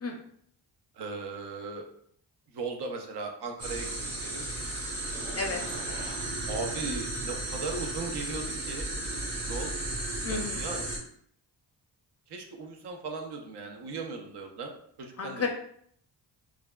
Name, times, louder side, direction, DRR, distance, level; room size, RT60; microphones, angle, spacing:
voice 1, 1.0-1.8 2.5-4.5 5.0-5.1 6.5-8.9 9.5-9.7 10.3-10.9 12.3-14.7 15.0-15.5, right 4 dB, 65° right, 3 dB, 0.7 m, -37 dB
sound 1, 3.6-11.0, right 2 dB, 35° right, 1.1 m, -34 dB
sound 2, 5.1-6.4, right 1 dB, 20° right, 0.6 m, -44 dB
voice 2, 10.2-10.7 15.2-15.5, left 4 dB, 35° left, 2 dB, 0.5 m, -32 dB
3.2 x 2.4 x 2.2 m, 0.65 s
cardioid pair, 65°, 43 cm